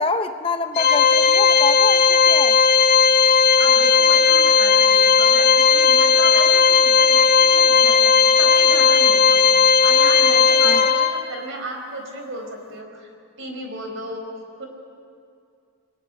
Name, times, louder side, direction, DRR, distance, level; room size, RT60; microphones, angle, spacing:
voice 1, 0.0-2.6 10.6-10.8, left 4 dB, 25° left, 7 dB, 0.8 m, -26 dB
Organ, 0.8-11.4, left 6 dB, 45° left, 1.1 m, -15 dB
voice 2, 3.6-8.0 8.3-13.1 13.4-14.3 14.6-14.7, right 1 dB, 55° right, 3 dB, 4.6 m, -33 dB
23.5 x 22.0 x 8.1 m, 2.4 s
head